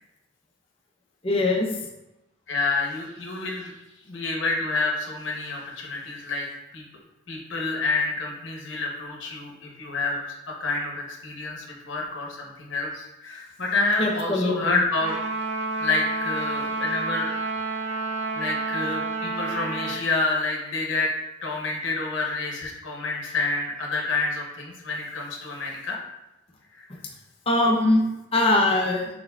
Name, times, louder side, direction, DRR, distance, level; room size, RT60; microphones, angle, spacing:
voice 1, 1.2-1.7 14.0-14.7 27.5-28.0 28.3-29.1, left 2 dB, 30° left, 0 dB, 0.5 m, -21 dB
voice 2, 2.5-3.7 4.1-6.4 6.7-6.8 7.3-15.1 15.8-17.3 17.7-18.0 18.3-21.1 21.4-26.0 26.7-26.8, left 3 dB, 70° left, -1 dB, 0.8 m, -28 dB
Trumpet, 15.0-20.0, right 3 dB, 60° right, 0.7 m, -29 dB
4.5 x 4.3 x 2.3 m, 0.93 s
head